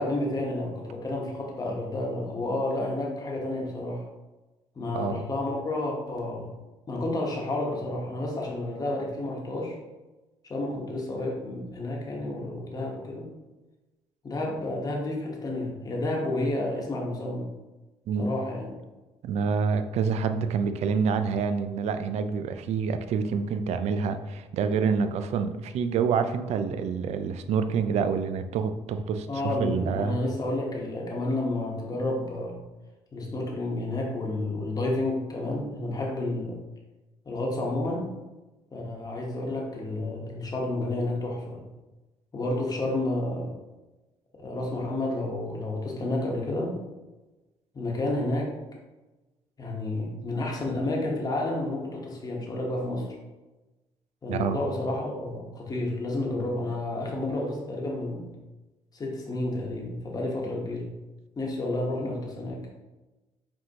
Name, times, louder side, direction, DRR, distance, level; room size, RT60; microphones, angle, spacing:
voice 1, 0.0-4.0 4.7-6.5 6.9-9.8 10.4-13.3 14.2-17.5 18.2-18.7 29.3-32.6 33.1-36.6 37.2-38.1 38.7-41.6 42.3-43.5 44.4-46.8 47.7-48.5 49.6-53.1 54.2-58.3 58.9-60.9 61.4-62.8, left 2 dB, 30° left, -1 dB, 1.1 m, -30 dB
voice 2, 4.9-5.2 18.1-18.3 19.2-30.2 54.3-54.6, right 6 dB, 65° right, 9 dB, 0.4 m, -27 dB
5.3 x 2.9 x 2.9 m, 1.1 s
supercardioid pair, 75°, 12 cm